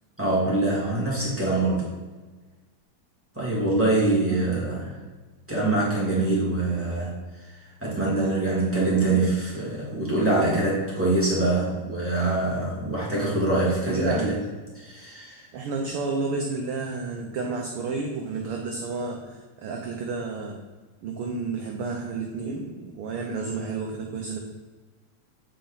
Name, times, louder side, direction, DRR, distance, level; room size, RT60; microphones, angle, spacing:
voice 1, 0.2-1.8 3.3-4.9 5.5-7.2 7.4-14.4 14.7-15.4, right 2 dB, 5° right, -7 dB, 1.3 m, -24 dB
voice 2, 13.9-14.4 15.5-20.6 21.0-24.4, right 4 dB, 80° right, 1 dB, 1.2 m, -31 dB
8.5 x 4.2 x 3.9 m, 1.3 s
omnidirectional pair, 3.3 m